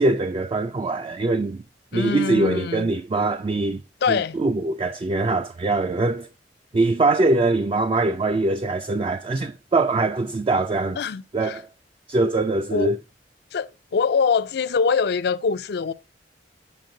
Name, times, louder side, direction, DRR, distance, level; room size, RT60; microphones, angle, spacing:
voice 1, 0.0-1.6 1.9-3.8 4.1-6.3 6.7-11.0 11.3-11.6 12.1-13.0, right 2 dB, 30° right, 0.3 m, -22 dB
voice 2, 1.9-2.9 4.0-4.4 11.0-11.6 12.7-12.9 13.5-15.9, left 5 dB, 65° left, 0.4 m, -24 dB
7.7 x 4.4 x 3.8 m
head